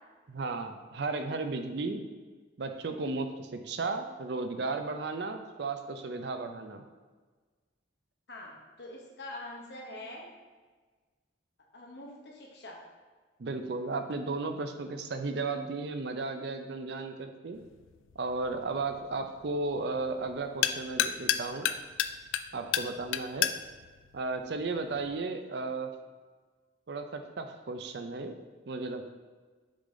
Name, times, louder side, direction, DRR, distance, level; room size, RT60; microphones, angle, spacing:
voice 1, 0.3-2.0 2.6-6.8 13.4-17.6 18.2-21.7 22.5-23.5 24.1-25.9 26.9-29.1, right 3 dB, 60° right, 6 dB, 0.5 m, -34 dB
voice 2, 8.3-10.2 11.7-12.8, left 1 dB, 60° left, -1 dB, 1.1 m, -44 dB
sound 1, 17.5-25.2, left 10 dB, 90° left, 0.3 m, -34 dB
6.4 x 3.9 x 3.7 m, 1.4 s
head